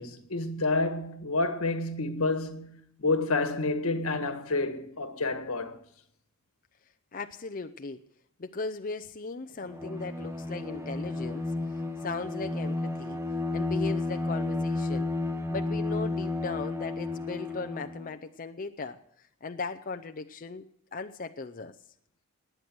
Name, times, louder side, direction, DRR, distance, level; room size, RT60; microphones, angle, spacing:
voice 1, 0.0-5.8, left 3 dB, 90° left, 1.6 m, -29 dB
voice 2, 7.1-8.0 8.4-13.2 13.5-15.1 15.5-19.0 19.4-21.8, left 3 dB, 40° left, 0.6 m, -38 dB
Bowed string instrument, 9.6-18.1, left 2 dB, 15° right, 1.2 m, -32 dB
19.0 x 9.0 x 6.1 m
head